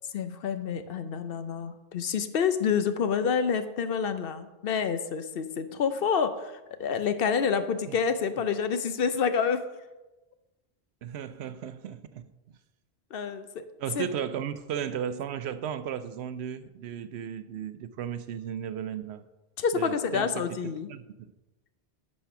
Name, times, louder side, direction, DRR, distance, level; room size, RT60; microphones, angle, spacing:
voice 1, 0.1-9.6 13.1-13.6 14.0-14.1 19.6-20.9, left 6 dB, 65° left, 0.8 m, -28 dB
voice 2, 11.0-12.2 13.8-19.2 19.7-20.6 20.9-21.3, right 9 dB, 85° right, 0.9 m, -35 dB
10.0 x 4.3 x 5.9 m
omnidirectional pair, 1.1 m